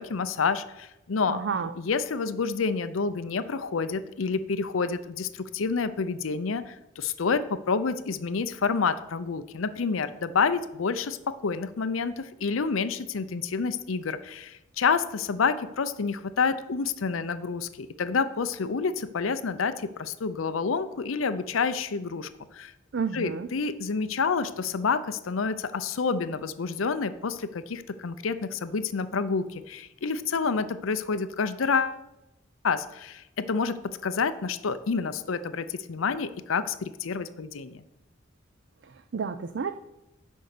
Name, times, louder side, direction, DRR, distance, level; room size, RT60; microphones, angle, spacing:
voice 1, 0.0-1.4 1.8-22.7 23.1-32.0 32.6-37.8, left 5 dB, 90° left, 13 dB, 0.6 m, -28 dB
voice 2, 1.3-1.7 22.9-23.5 38.8-39.7, right 5 dB, 60° right, 10 dB, 0.4 m, -31 dB
10.0 x 5.4 x 6.6 m, 0.92 s
head